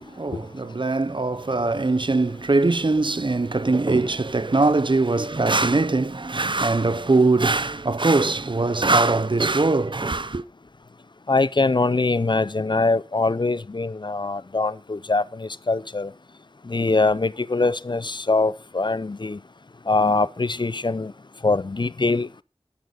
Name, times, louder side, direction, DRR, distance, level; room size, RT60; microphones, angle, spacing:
voice 1, 0.0-10.4, right 3 dB, 50° right, 0.7 m, -21 dB
voice 2, 11.3-16.1 16.7-19.4 19.9-21.1 21.4-22.3, left 3 dB, 50° left, 0.5 m, -23 dB
12.0 x 10.5 x 3.9 m
wide cardioid pair, 45°, 10 cm